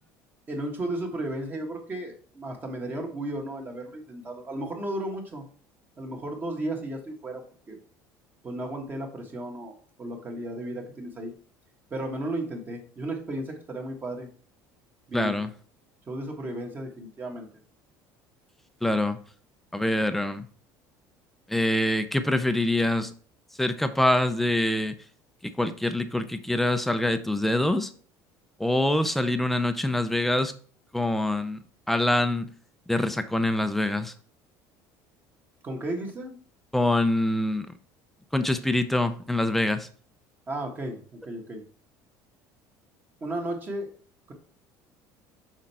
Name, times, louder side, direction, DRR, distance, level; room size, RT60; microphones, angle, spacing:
voice 1, 0.5-5.4 6.0-7.8 8.4-11.3 11.9-14.3 15.1-15.3 16.1-17.5 35.6-36.4 40.5-41.6 43.2-43.9 44.3-44.4, right 1 dB, 25° right, 2 dB, 1.4 m, -34 dB
voice 2, 15.1-15.5 18.8-19.2 19.7-20.5 21.5-23.1 23.6-24.9 25.4-27.9 28.6-30.5 30.9-32.5 32.9-34.1 36.7-37.7 38.3-39.9, left 1 dB, ahead, 9 dB, 0.5 m, -25 dB
6.3 x 4.5 x 4.2 m, 0.43 s
cardioid pair, 155°, 8 cm